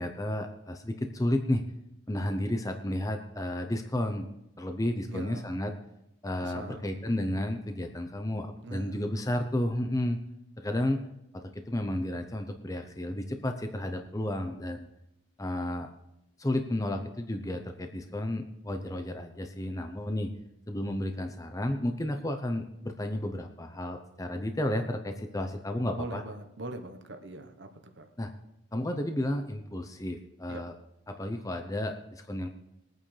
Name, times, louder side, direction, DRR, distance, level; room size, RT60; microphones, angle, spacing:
voice 1, 0.0-1.6 2.1-4.3 4.6-5.7 6.2-10.2 10.6-11.0 11.3-14.9 15.4-15.9 16.4-20.3 20.7-26.2 28.2-28.3 28.7-30.7 31.1-32.5, left 1 dB, 15° left, 5 dB, 0.7 m, -32 dB
voice 2, 5.1-5.6 6.4-6.9 8.6-9.0 26.0-28.1 30.5-30.6, right 2 dB, 60° right, 5 dB, 1.1 m, -41 dB
22.0 x 9.1 x 3.3 m, 0.85 s
head